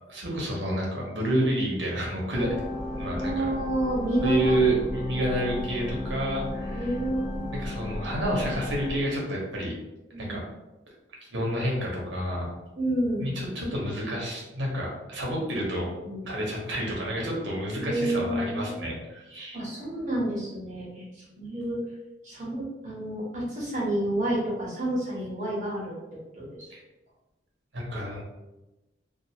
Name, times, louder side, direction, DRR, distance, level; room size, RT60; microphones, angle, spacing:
voice 1, 0.1-2.5 2.9-3.4 4.2-6.9 7.5-9.7 10.2-10.4 11.2-12.5 13.2-15.9 16.3-19.6 26.7-26.8 27.7-28.2, right 1 dB, 75° right, -3 dB, 0.9 m, -29 dB
sound 1, 2.3-9.0, left 1 dB, 5° left, 0.4 m, -34 dB
voice 2, 3.2-4.6 6.7-7.5 10.1-10.4 12.8-13.3 16.0-16.3 17.8-19.0 19.5-21.8 22.2-25.9 26.3-26.7, right 1 dB, 40° right, -6 dB, 1.0 m, -29 dB
2.4 x 2.4 x 2.8 m, 1.0 s
head